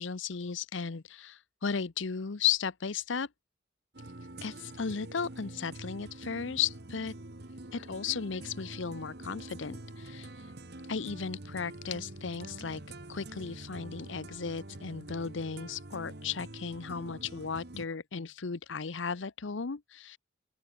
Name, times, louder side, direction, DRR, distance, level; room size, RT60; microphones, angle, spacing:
voice 1, 0.0-3.3 4.4-7.1 7.7-10.3 10.9-12.8 13.1-20.2, left 6 dB, 75° left, 0.8 m, -35 dB
sound 1, 3.9-17.9, right 2 dB, 55° right, 1.6 m, -46 dB
open air
head